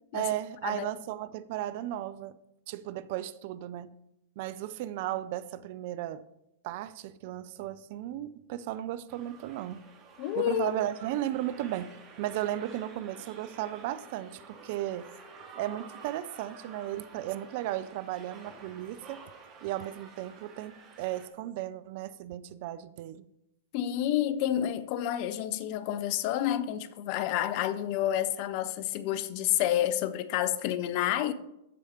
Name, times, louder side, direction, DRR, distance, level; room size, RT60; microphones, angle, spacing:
voice 1, 0.1-2.4 2.7-3.9 4.4-6.2 6.6-9.9 10.4-15.1 15.6-19.2 19.6-23.3, right 13 dB, 50° right, 0.5 m, -35 dB
sound 1, 9.1-21.3, right 5 dB, 35° right, 2.2 m, -51 dB
voice 2, 10.2-10.7 23.7-31.3, left 12 dB, 50° left, 0.7 m, -29 dB
14.0 x 4.8 x 4.4 m
hypercardioid pair, 105°, 0 cm